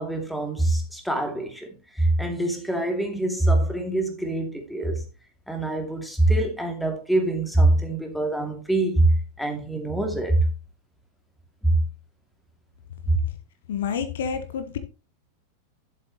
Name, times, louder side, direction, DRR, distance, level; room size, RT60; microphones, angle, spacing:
voice 1, 0.0-5.0 5.5-10.5 11.6-11.8 13.1-13.2, right 2 dB, ahead, 2.4 m, -24 dB
voice 2, 13.7-14.8, left 7 dB, 60° left, 1.2 m, -28 dB
11.5 x 7.8 x 3.0 m
figure-of-eight pair, 90°, 0 cm